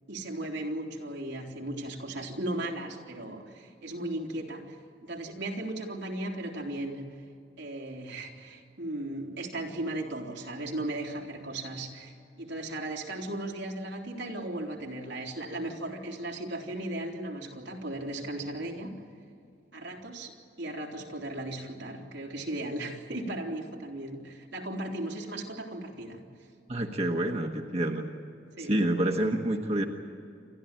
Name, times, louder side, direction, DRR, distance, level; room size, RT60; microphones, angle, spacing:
voice 1, 0.1-7.2 7.6-19.0 19.7-26.2 28.6-28.7, right 1 dB, 85° right, 0 dB, 3.4 m, -36 dB
voice 2, 26.7-28.0 28.6-29.9, right 1 dB, 35° right, 2 dB, 1.3 m, -28 dB
29.0 x 13.0 x 9.0 m, 2.5 s
head